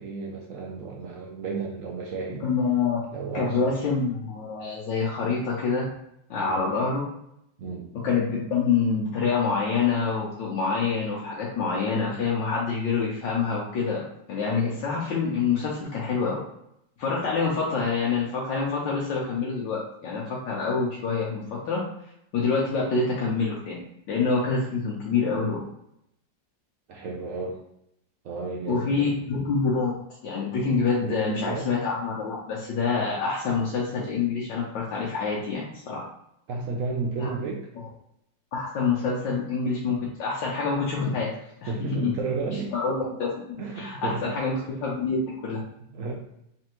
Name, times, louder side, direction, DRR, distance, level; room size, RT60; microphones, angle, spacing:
voice 1, 0.0-2.4 3.1-3.7 6.5-6.6 7.6-7.9 26.9-27.6 28.2-29.1 31.0-31.6 36.5-37.6 41.7-42.7 43.6-44.3 45.9-46.1, right 4 dB, 70° right, 0 dB, 0.7 m, -32 dB
voice 2, 2.4-3.0 3.3-5.8 6.3-7.1 8.0-16.4 17.0-21.8 22.3-23.8 24.1-25.6 28.7-29.9 30.2-36.0 37.2-37.3 38.5-41.3 41.6-41.7 42.0-42.1 42.7-44.5 44.8-45.6, left 5 dB, 75° left, -4 dB, 1.4 m, -26 dB
3.8 x 3.3 x 3.0 m, 0.77 s
omnidirectional pair, 2.0 m